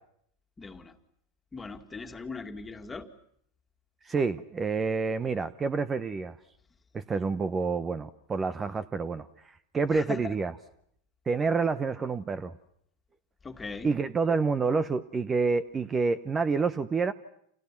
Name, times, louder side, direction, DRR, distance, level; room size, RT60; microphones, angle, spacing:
voice 1, 0.6-0.9 1.5-3.1 9.9-10.3 13.4-13.9, left 4 dB, 15° left, 7 dB, 2.3 m, -39 dB
voice 2, 4.0-6.4 6.9-10.5 11.3-12.5 13.8-17.1, right 4 dB, 20° right, 14 dB, 1.0 m, -28 dB
30.0 x 28.0 x 6.0 m, 0.70 s
hypercardioid pair, 100°, 0 cm